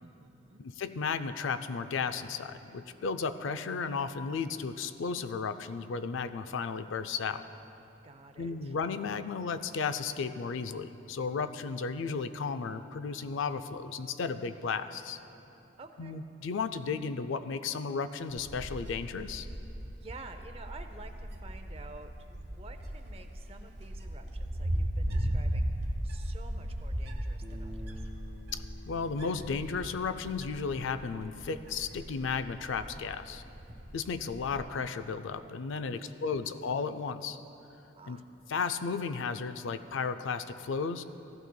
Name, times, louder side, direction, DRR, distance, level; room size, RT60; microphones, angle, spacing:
voice 1, 0.0-0.7 8.0-8.7 15.8-16.2 20.0-28.1 32.9-33.2 35.9-36.2 36.5-36.7 37.9-38.2, right 3 dB, 30° right, 7 dB, 0.5 m, -51 dB
voice 2, 0.6-7.4 8.4-15.2 16.0-19.5 28.5-33.4 33.9-37.4 38.1-38.2 38.5-41.0, left 5 dB, 80° left, 11 dB, 0.4 m, -34 dB
Wind, 18.3-34.6, equal, 55° right, 1.1 m, -37 dB
Bass guitar, 27.4-33.7, left 1 dB, 50° left, 1.7 m, -52 dB
15.5 x 12.0 x 2.2 m, 2.9 s
head